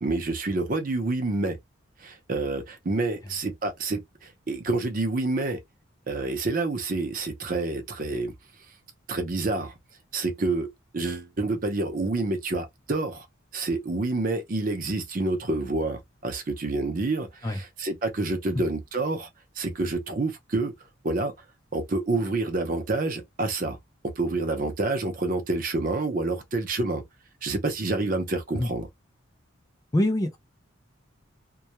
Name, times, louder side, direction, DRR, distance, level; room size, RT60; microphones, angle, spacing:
voice 1, 0.0-1.6 2.0-5.6 6.1-8.3 9.1-9.7 10.1-13.3 13.5-19.3 19.6-20.7 21.0-21.3 21.7-23.8 24.2-27.0 27.4-28.9, right 2 dB, 40° right, 0.5 m, -28 dB
voice 2, 29.9-30.4, left 1 dB, 15° left, 0.3 m, -24 dB
2.2 x 2.0 x 2.8 m
head